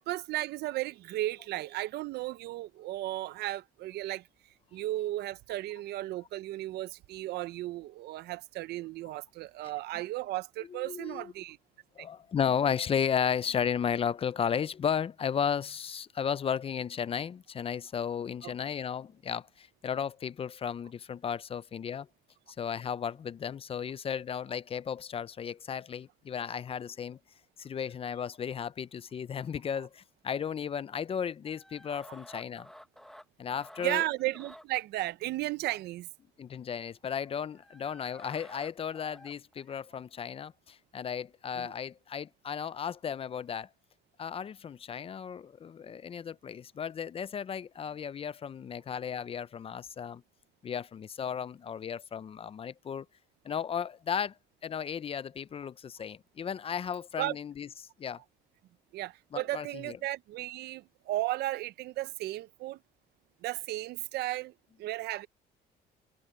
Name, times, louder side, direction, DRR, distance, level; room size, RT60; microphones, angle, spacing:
voice 1, 0.0-4.2 4.7-11.6 12.0-12.1 18.4-18.5 33.8-36.1 41.6-41.7 57.2-57.4 58.9-62.8 63.4-64.5 64.8-65.3, right 16 dB, 75° right, 0.7 m, -35 dB
voice 2, 10.7-11.3 12.0-22.1 22.6-27.2 27.6-32.7 33.4-34.0 36.4-43.7 44.2-50.2 50.6-53.1 53.4-54.3 54.6-57.7 58.0-58.2 59.3-60.0, left 7 dB, 35° left, 0.6 m, -34 dB
sound 1, 31.5-33.9 34.2-34.6 37.3-39.8, equal, ahead, 1.2 m, -52 dB
cardioid pair, 110°, 17 cm